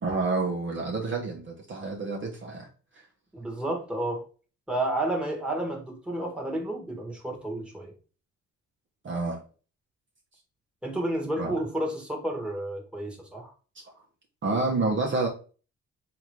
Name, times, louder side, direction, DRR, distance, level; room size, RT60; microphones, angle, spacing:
voice 1, 0.0-2.7 3.0-3.1 9.0-9.4 11.4-11.5 14.4-15.3, right 3 dB, 40° right, 1.1 m, -28 dB
voice 2, 3.3-4.3 4.7-7.9 10.8-13.5, right 1 dB, 5° right, 1.5 m, -31 dB
3.6 x 3.0 x 4.6 m
cardioid pair, 90°, 30 cm